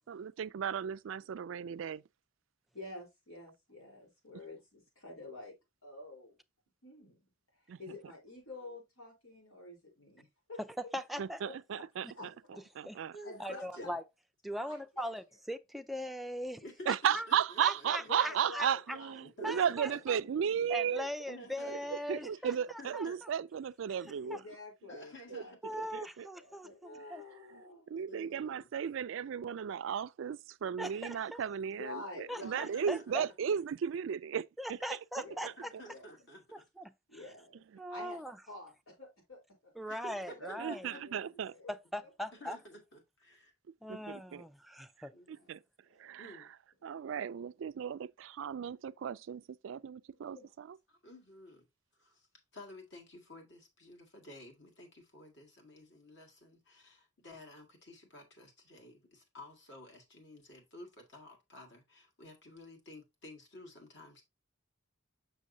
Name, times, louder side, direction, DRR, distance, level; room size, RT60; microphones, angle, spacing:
voice 1, 0.1-2.0 7.7-7.9 11.2-12.3 12.8-13.2 16.9-21.1 21.7-24.4 25.3-25.4 25.9-26.3 27.1-27.2 27.5-27.6 27.9-35.8 40.6-41.5 43.9-44.5 45.0-45.6 46.0-46.5 46.8-50.8, right 8 dB, 65° right, 0.3 m, -35 dB
voice 2, 2.7-5.5 5.8-6.4 6.8-7.3 7.8-10.9 11.4-11.5 12.2-12.6 13.2-14.0 14.6-15.1 18.0-19.6 20.4-20.6 24.2-25.8 26.3-27.9 31.7-32.8 35.2-35.5 35.9-36.0 37.1-37.6 37.9-39.7 40.4-41.7 42.0-42.1 45.1-45.5 46.0-46.1 46.9-47.0 50.2-50.5, left 2 dB, 85° left, 3.7 m, -49 dB
voice 3, 10.9-11.4 12.9-13.0 13.4-14.0 14.4-17.3 17.6-18.7 19.4-19.9 20.7-22.5 22.9-23.0 24.3-24.4 25.6-27.2 30.8-31.4 32.3-33.3 34.6-35.7 36.5-37.2 37.8-38.4 39.8-40.9 41.7-42.6 43.8-45.1, equal, ahead, 0.4 m, -40 dB
voice 4, 13.1-13.9 16.6-17.9 19.2-20.2 21.3-22.2 22.8-23.2 24.9-25.9 28.1-28.7 32.4-33.3 35.6-36.7 39.9-41.2 42.3-43.5 43.9-44.1 45.1-45.4 46.2-46.5 50.9-51.6 52.0-52.3 52.5-64.2, left 1 dB, 60° left, 2.1 m, -52 dB
6.3 x 6.2 x 2.7 m
head